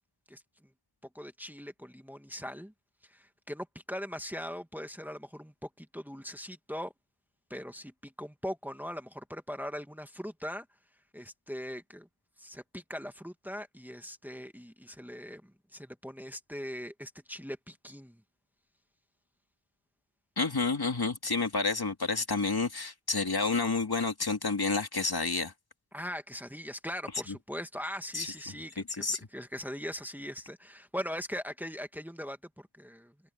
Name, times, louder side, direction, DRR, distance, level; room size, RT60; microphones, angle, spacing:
voice 1, 1.1-2.7 3.1-6.9 7.5-10.7 11.1-12.1 12.4-18.2 25.9-33.1, equal, 5° right, 2.1 m, -40 dB
voice 2, 20.4-25.5 28.1-28.3 28.9-29.2, left 4 dB, 50° left, 2.3 m, -29 dB
wide cardioid pair, 60°, 48 cm